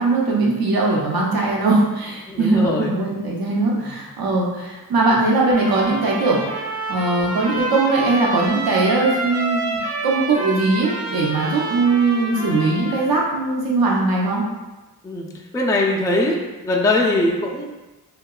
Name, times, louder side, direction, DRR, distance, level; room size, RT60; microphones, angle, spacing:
voice 1, 0.0-14.4, right 3 dB, 65° right, -3 dB, 0.7 m, -20 dB
voice 2, 2.3-2.9 3.7-3.9 15.0-17.7, left 2 dB, 10° left, -1 dB, 0.3 m, -21 dB
Trumpet, 5.5-13.1, right 2 dB, 80° right, 1.1 m, -28 dB
2.7 x 2.2 x 2.3 m, 1.1 s
cardioid pair, 50°, 39 cm